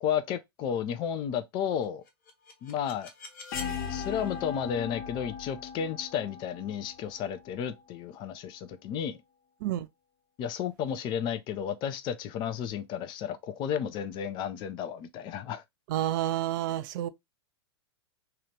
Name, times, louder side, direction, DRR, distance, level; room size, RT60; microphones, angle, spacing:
voice 1, 0.0-2.0 2.6-3.1 3.9-9.2 10.4-15.6, left 8 dB, 35° left, 0.5 m, -32 dB
sound 1, 2.1-7.9, left 7 dB, 50° left, 0.9 m, -39 dB
voice 2, 15.9-17.1, right 13 dB, 50° right, 0.4 m, -29 dB
2.9 x 2.4 x 3.1 m
figure-of-eight pair, 100°, 14 cm